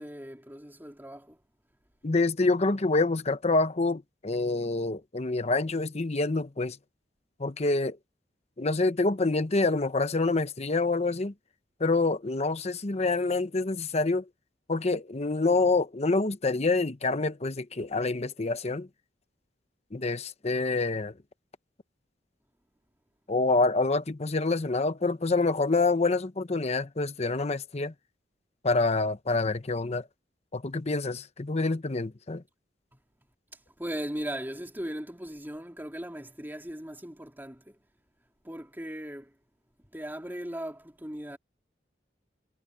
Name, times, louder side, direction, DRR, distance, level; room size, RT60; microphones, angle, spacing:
voice 1, 0.0-1.4 32.9-33.0 33.8-37.8 38.4-39.3 39.9-41.4, equal, 10° right, 3.0 m, -38 dB
voice 2, 2.0-6.8 7.4-8.0 8.6-11.3 11.8-14.2 14.7-18.9 19.9-21.1 23.3-27.9 28.6-30.1 30.5-32.4, left 3 dB, 35° left, 0.9 m, -27 dB
head